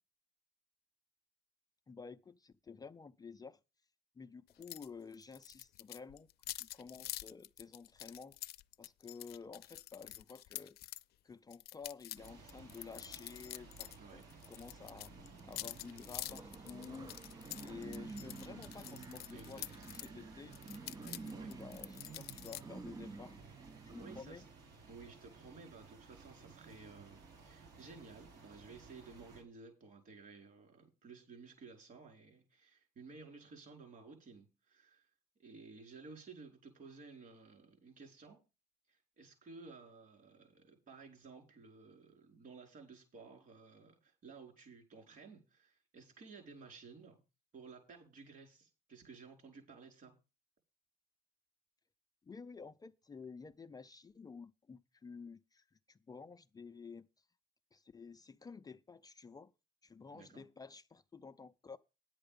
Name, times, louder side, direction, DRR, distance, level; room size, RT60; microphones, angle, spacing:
voice 1, 1.9-3.6 4.2-8.4 8.8-11.0 11.2-14.2 14.5-15.1 15.4-20.6 21.2-23.4 23.8-24.4 52.2-57.3 57.7-59.5 59.8-61.8, left 5 dB, 20° left, 0.5 m, -52 dB
sound 1, 4.6-4.9 5.1-11.0 11.5-14.0 14.2-20.1 20.5-22.6, left 15 dB, 70° left, 0.5 m, -47 dB
sound 2, 12.2-29.4, right 4 dB, 75° right, 4.8 m, -57 dB
sound 3, 14.7-24.2, right 3 dB, 20° right, 0.6 m, -50 dB
voice 2, 19.3-19.7 20.9-21.5 24.0-24.4 24.9-35.0 35.4-38.4 38.9-47.2 47.5-50.1 60.1-60.4, right 4 dB, 55° right, 4.9 m, -55 dB
10.0 x 8.7 x 5.2 m
cardioid pair, 110°, 17 cm